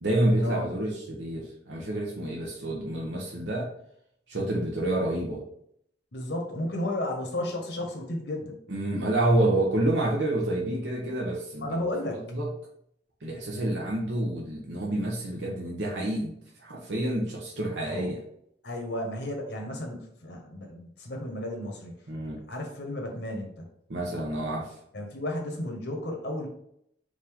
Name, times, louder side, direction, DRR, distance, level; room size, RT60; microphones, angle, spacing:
voice 1, 0.0-3.7 4.3-5.4 8.7-11.9 12.3-12.5 13.2-18.2 22.1-22.4 23.9-24.7, right 1 dB, 70° right, -3 dB, 0.9 m, -28 dB
voice 2, 6.1-8.6 11.6-12.2 17.9-18.1 18.6-22.0 22.5-23.7 24.9-26.5, left 1 dB, 60° left, 2 dB, 1.1 m, -33 dB
5.1 x 2.7 x 3.5 m, 0.71 s
head